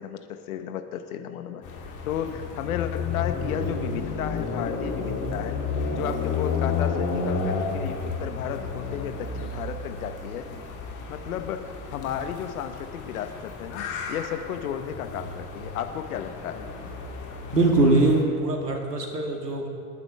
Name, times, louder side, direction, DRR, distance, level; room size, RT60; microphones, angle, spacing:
voice 1, 0.0-1.6 2.1-5.6 6.0-10.5 11.1-16.7, left 9 dB, 65° left, 8 dB, 1.2 m, -33 dB
sound 1, 1.6-18.2, left 4 dB, 40° left, 2.9 m, -32 dB
voice 2, 17.5-19.7, right 2 dB, 85° right, 2 dB, 1.9 m, -22 dB
27.0 x 10.5 x 3.5 m, 2.4 s
figure-of-eight pair, 80°, 47 cm